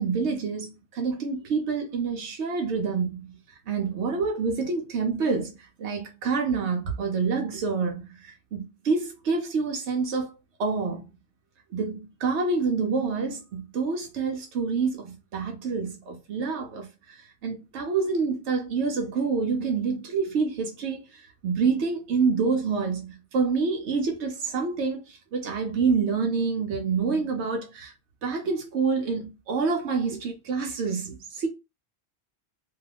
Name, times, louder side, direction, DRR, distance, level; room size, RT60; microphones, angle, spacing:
voice 1, 0.0-10.3 10.6-11.0 11.7-27.9 28.2-31.5, right 5 dB, 85° right, 1.0 m, -27 dB
2.5 x 2.4 x 3.3 m
omnidirectional pair, 1.1 m